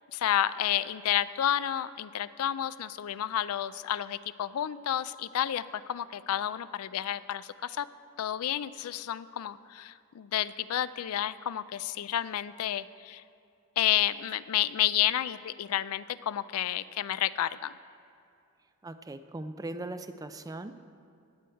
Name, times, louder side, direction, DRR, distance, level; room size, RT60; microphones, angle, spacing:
voice 1, 0.1-5.6 5.9-7.9 8.2-13.2 13.8-17.7, left 11 dB, 75° left, 16 dB, 0.4 m, -30 dB
voice 2, 18.8-20.7, right 2 dB, 15° right, 10 dB, 0.4 m, -39 dB
17.5 x 7.7 x 4.5 m, 2.5 s
head